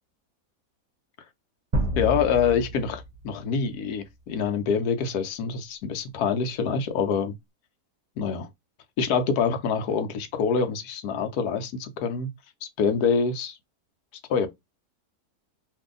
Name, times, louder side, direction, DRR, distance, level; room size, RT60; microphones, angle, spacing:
sound 1, 1.7-3.7, equal, 30° right, 0.7 m, -30 dB
voice 1, 2.0-7.3 8.2-8.5 9.0-12.3 12.6-13.6 14.3-14.5, left 6 dB, 75° left, 1.2 m, -26 dB
2.7 x 2.6 x 3.7 m
omnidirectional pair, 1.6 m